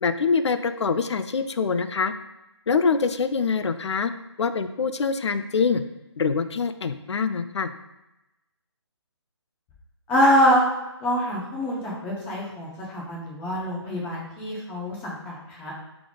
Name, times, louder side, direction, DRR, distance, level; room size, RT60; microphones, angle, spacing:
voice 1, 0.0-2.1 2.7-4.1 4.4-5.8 6.2-7.7, left 5 dB, 75° left, 11 dB, 0.4 m, -24 dB
voice 2, 10.1-10.6 11.0-15.7, equal, 10° left, -4 dB, 0.6 m, -24 dB
3.5 x 3.3 x 3.7 m, 0.95 s
figure-of-eight pair, 155°, 15 cm